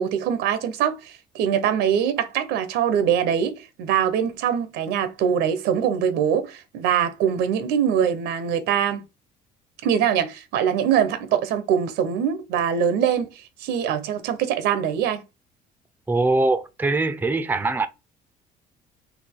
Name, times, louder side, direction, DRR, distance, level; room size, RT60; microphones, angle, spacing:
voice 1, 0.0-9.0 9.8-13.3 13.6-15.2, right 8 dB, 85° right, 0.9 m, -23 dB
voice 2, 16.1-17.9, right 3 dB, 10° right, 0.5 m, -22 dB
4.1 x 2.8 x 4.5 m
cardioid pair, 110°, 17 cm